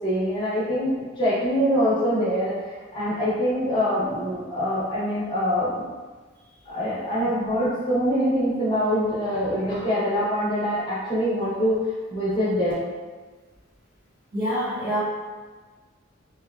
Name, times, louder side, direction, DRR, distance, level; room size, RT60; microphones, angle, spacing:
voice 1, 0.0-2.5 2.9-5.8 6.7-11.8 12.1-12.7, equal, 25° left, -10 dB, 0.8 m, -24 dB
voice 2, 14.3-15.0, equal, 55° right, -9 dB, 1.0 m, -26 dB
2.8 x 2.2 x 2.3 m, 1.4 s
head